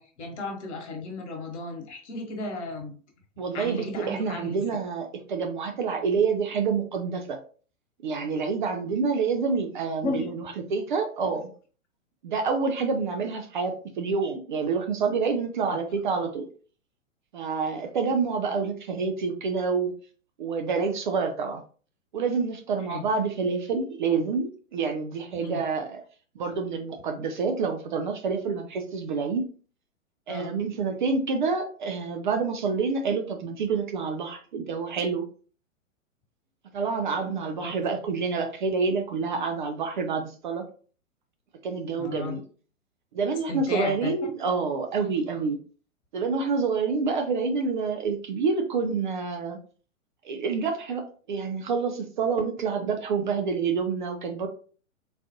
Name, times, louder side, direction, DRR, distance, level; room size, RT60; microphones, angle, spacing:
voice 1, 0.0-2.9 3.5-4.6 10.0-10.3 15.7-15.8 22.9-23.0 25.4-25.6 30.3-30.6 37.6-37.7 42.0-42.4 43.5-44.3, left 2 dB, 55° left, 2 dB, 1.3 m, -34 dB
voice 2, 3.4-7.4 8.0-10.4 10.7-11.5 12.2-16.5 17.3-19.9 20.4-21.6 22.1-26.0 26.4-29.4 30.3-35.2 36.7-40.7 41.6-42.4 43.1-45.6 46.1-49.6 50.2-54.5, right 5 dB, 40° right, 5 dB, 0.4 m, -27 dB
3.9 x 2.4 x 2.7 m, 0.41 s
figure-of-eight pair, 115°, 41 cm